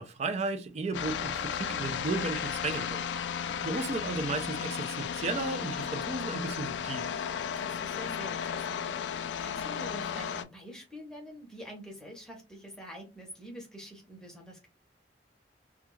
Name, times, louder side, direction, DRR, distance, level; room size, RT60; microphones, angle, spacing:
voice 1, 0.0-3.0 3.4-7.1, right 3 dB, 40° right, 0.4 m, -34 dB
sound 1, 0.9-10.4, left 7 dB, 80° left, 0.3 m, -34 dB
voice 2, 3.6-4.0 7.5-14.7, equal, 5° left, 0.8 m, -46 dB
2.3 x 2.2 x 3.0 m
head